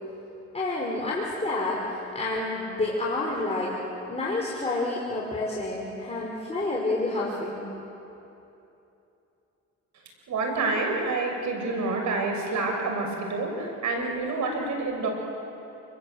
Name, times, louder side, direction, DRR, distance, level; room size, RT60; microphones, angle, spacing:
voice 1, 0.5-3.8 4.1-7.6, left 2 dB, 20° left, -4 dB, 5.1 m, -29 dB
voice 2, 10.3-15.1, right 3 dB, 70° right, 2 dB, 6.8 m, -28 dB
29.0 x 21.5 x 8.2 m, 2.9 s
cardioid pair, 90°, 30 cm